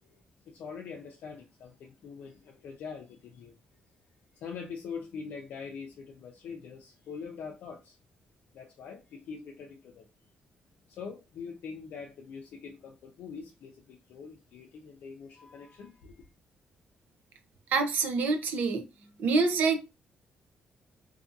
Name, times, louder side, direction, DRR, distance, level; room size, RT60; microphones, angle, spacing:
voice 1, 0.5-3.5 4.3-8.0 8.5-10.1 10.9-16.3, left 5 dB, 75° left, 0.5 m, -43 dB
voice 2, 17.7-18.8 19.2-19.8, right 4 dB, 75° right, 0.5 m, -26 dB
2.6 x 2.5 x 2.5 m
cardioid pair, 150°, 3 cm